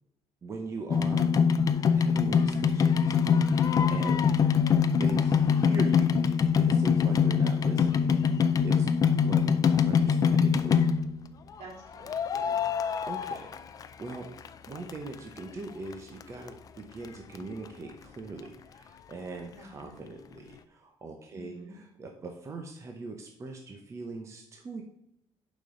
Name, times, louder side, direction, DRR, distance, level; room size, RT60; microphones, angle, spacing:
voice 1, 0.4-1.3 1.9-3.2 3.9-4.7 5.0-6.1 6.6-8.1 8.6-8.9 9.2-10.9 13.1-14.3 14.7-24.8, right 3 dB, 25° right, 3 dB, 0.8 m, -41 dB
sound 1, 0.9-11.2 12.1-14.2 14.4-15.4 15.9-16.0 16.2-16.3 16.5-16.6 17.0-17.1 17.4-17.5, left 6 dB, 35° left, 0.4 m, -24 dB
voice 2, 11.6-12.7 19.5-20.0 21.3-21.8, right 2 dB, 75° right, -2 dB, 3.1 m, -49 dB
11.0 x 5.2 x 3.8 m, 0.79 s
cardioid pair, 160°, 11 cm